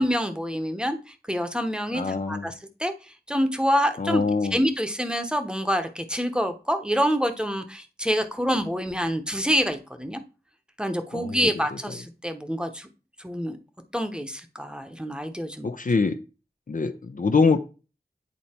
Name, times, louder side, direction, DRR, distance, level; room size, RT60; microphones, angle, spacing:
voice 1, 0.0-2.5 2.8-2.9 3.3-4.2 4.5-10.2 10.8-12.9 13.2-13.6 13.9-15.7, equal, 5° right, 0.9 m, -26 dB
voice 2, 1.9-2.5 4.0-4.6 11.1-11.5 15.6-16.2 16.7-17.6, left 4 dB, 55° left, 0.6 m, -24 dB
8.5 x 4.1 x 4.3 m
wide cardioid pair, 50°, 17 cm